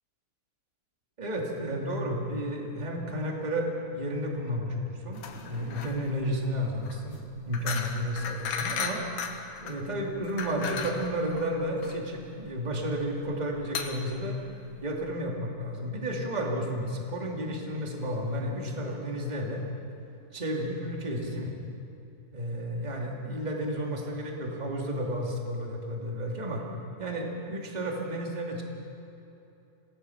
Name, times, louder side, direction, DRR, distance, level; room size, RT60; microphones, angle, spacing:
voice 1, 1.2-9.0 9.6-14.4 14.8-19.6 20.3-21.5 22.3-26.6 27.0-28.6, equal, 15° right, -1 dB, 2.1 m, -32 dB
sound 1, 5.1-15.1, left 6 dB, 85° left, 2.9 m, -37 dB
26.5 x 19.0 x 5.8 m, 2.9 s
omnidirectional pair, 3.6 m